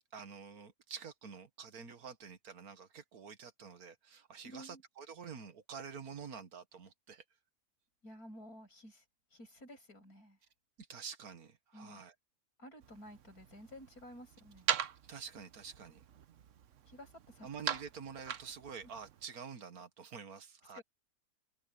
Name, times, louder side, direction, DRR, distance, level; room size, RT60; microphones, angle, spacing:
voice 1, 0.1-7.2 10.8-12.1 15.0-16.0 17.4-20.8, right 6 dB, 75° right, 1.9 m, -48 dB
voice 2, 4.4-4.8 8.0-9.0 9.3-10.4 11.7-12.0 12.6-14.7 16.9-17.5 20.7-20.8, equal, 80° left, 8.5 m, -52 dB
sound 1, 12.8-19.3, right 9 dB, 60° right, 1.1 m, -42 dB
omnidirectional pair, 1.6 m